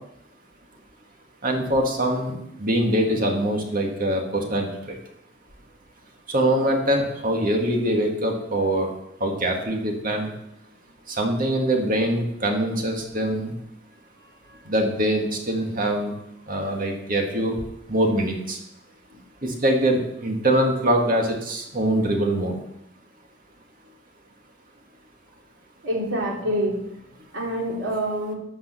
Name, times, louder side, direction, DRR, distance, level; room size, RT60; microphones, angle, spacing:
voice 1, 1.4-5.0 6.3-8.9 9.2-10.3 11.1-13.5 14.7-16.1 16.5-17.6 17.9-18.6 19.4-22.6, right 1 dB, 45° right, 2 dB, 2.0 m, -23 dB
voice 2, 25.8-26.8 27.3-28.3, right 1 dB, 90° right, -2 dB, 3.4 m, -26 dB
12.5 x 5.4 x 6.8 m, 0.78 s
head